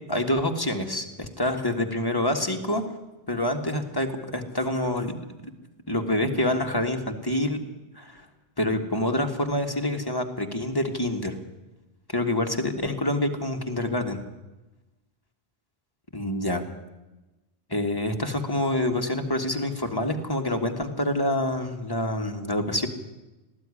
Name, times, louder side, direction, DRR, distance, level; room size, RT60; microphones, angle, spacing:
voice 1, 0.1-2.8 3.3-5.2 5.9-7.6 8.0-8.2 8.6-11.4 12.1-14.2 16.1-16.6 17.7-22.9, left 1 dB, 20° left, 3 dB, 2.0 m, -27 dB
19.0 x 14.0 x 10.0 m, 1.1 s
omnidirectional pair, 1.1 m